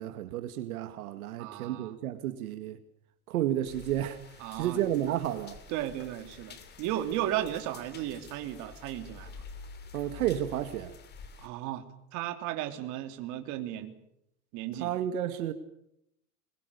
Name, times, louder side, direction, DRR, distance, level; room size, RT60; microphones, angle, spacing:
voice 1, 0.0-2.8 3.3-4.2 4.5-5.6 9.9-10.9 14.8-15.5, right 12 dB, 75° right, 2.0 m, -31 dB
voice 2, 1.4-2.0 4.4-4.8 5.7-9.4 11.4-11.8 12.1-14.0 14.5-14.9, right 13 dB, 40° right, 3.1 m, -35 dB
sound 1, 3.7-11.5, left 6 dB, 25° left, 3.0 m, -49 dB
25.0 x 22.5 x 6.9 m
supercardioid pair, 150°, 43 cm